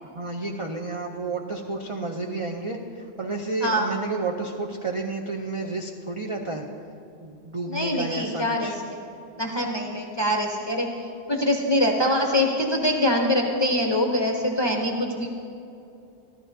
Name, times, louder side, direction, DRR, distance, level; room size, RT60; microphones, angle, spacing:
voice 1, 0.0-6.6 7.2-8.8, right 3 dB, 40° right, 1 dB, 0.5 m, -31 dB
voice 2, 7.7-8.7 9.4-10.9 11.3-15.3, left 1 dB, 25° left, 0 dB, 0.7 m, -24 dB
13.5 x 13.0 x 2.7 m, 2.7 s
omnidirectional pair, 1.2 m